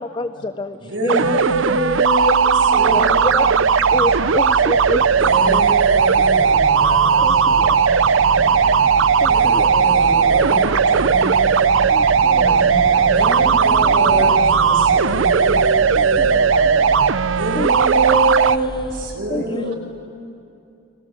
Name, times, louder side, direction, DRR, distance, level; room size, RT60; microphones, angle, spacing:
voice 1, 0.0-1.4 2.2-2.3 2.7-3.0 3.3-3.5 3.9-5.3 7.2-7.8 9.0-9.8 11.9-12.6 13.8-14.2 15.9-16.5 17.6-17.7 18.0-18.1 19.3-19.7, left 2 dB, 25° left, 10 dB, 0.6 m, -28 dB
voice 2, 0.8-3.6 5.0-7.5 9.2-11.7 12.4-16.5 17.3-19.8, right 1 dB, 75° right, 1 dB, 6.2 m, -25 dB
sound 1, 1.1-18.6, right 6 dB, 90° right, 0.6 m, -16 dB
sound 2, 1.4-19.2, right 1 dB, 35° right, 0.9 m, -32 dB
voice 3, 6.8-8.9 9.7-10.0 12.1-13.2 14.2-14.3 14.9-15.2 16.1-17.1 19.4-19.5, left 2 dB, 85° left, 1 dB, 5.1 m, -32 dB
29.5 x 22.5 x 8.4 m, 2.6 s
head